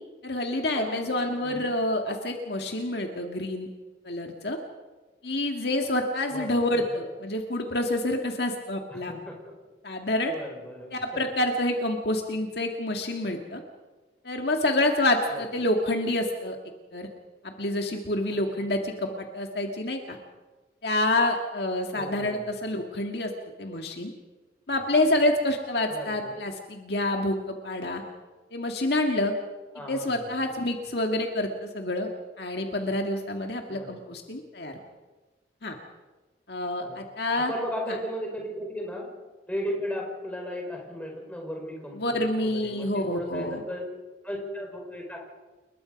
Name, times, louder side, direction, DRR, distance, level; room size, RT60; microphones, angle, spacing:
voice 1, 0.2-3.7 4.0-4.6 5.2-9.1 9.8-10.3 10.9-13.6 14.2-16.6 16.9-17.1 17.4-20.2 20.8-23.3 23.6-24.1 24.7-28.0 28.5-29.3 29.9-32.1 32.4-34.7 35.6-35.8 36.5-37.5 37.9-38.0 41.9-43.6, left 1 dB, 55° left, 3 dB, 2.1 m, -27 dB
voice 2, 0.7-1.1 1.4-1.8 6.3-6.8 8.9-9.6 10.3-11.2 15.3-15.4 18.5-18.6 21.9-22.5 25.9-26.4 29.7-30.4 33.7-34.1 36.8-39.1 39.5-43.9 44.2-45.2, equal, 5° left, 0 dB, 5.2 m, -36 dB
29.5 x 21.0 x 5.3 m, 1.2 s
head